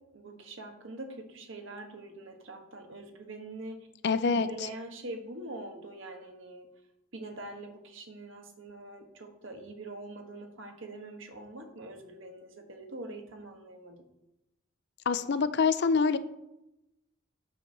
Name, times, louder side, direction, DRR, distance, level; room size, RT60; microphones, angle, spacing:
voice 1, 0.1-3.8 4.4-6.7 7.1-14.1, right 2 dB, 60° right, 4 dB, 1.3 m, -44 dB
voice 2, 4.0-4.7 15.1-16.2, left 5 dB, 50° left, 13 dB, 0.5 m, -26 dB
8.8 x 4.6 x 6.5 m, 0.90 s
head